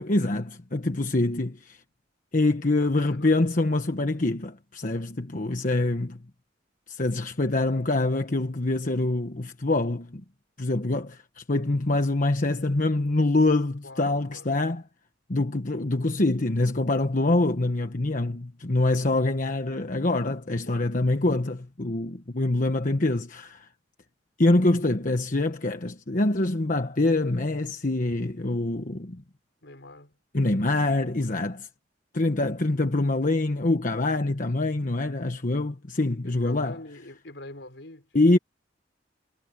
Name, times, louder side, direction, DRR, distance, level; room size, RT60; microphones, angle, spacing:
voice 1, 0.0-1.8 2.3-6.2 6.9-10.2 10.6-14.8 15.3-23.7 24.4-29.2 30.3-31.7 32.1-36.8 38.1-38.4, left 2 dB, 50° left, 1.2 m, -25 dB
voice 2, 2.8-3.4 13.8-14.5 20.7-20.9 29.6-30.2 36.2-38.4, left 2 dB, 75° left, 5.4 m, -45 dB
head